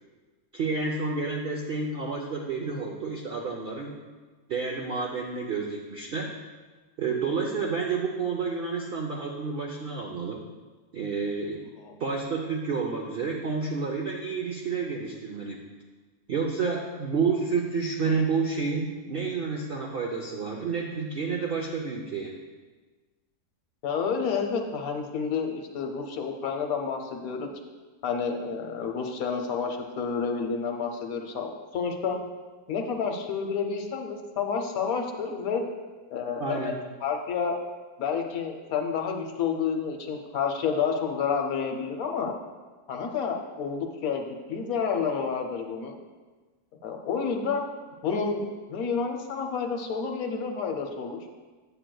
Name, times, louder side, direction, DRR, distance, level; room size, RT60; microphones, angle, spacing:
voice 1, 0.5-4.0 4.5-6.3 7.0-10.4 10.9-11.6 12.0-15.6 16.3-22.4 36.4-36.7, right 4 dB, 65° right, 0 dB, 0.5 m, -30 dB
voice 2, 23.8-27.5 28.0-32.2 32.7-35.6 36.1-36.7 37.0-37.6 38.0-42.3 42.9-45.9 46.8-47.6 48.0-51.2, left 6 dB, 70° left, 3 dB, 1.1 m, -29 dB
8.9 x 7.6 x 2.2 m, 1.3 s
omnidirectional pair, 1.7 m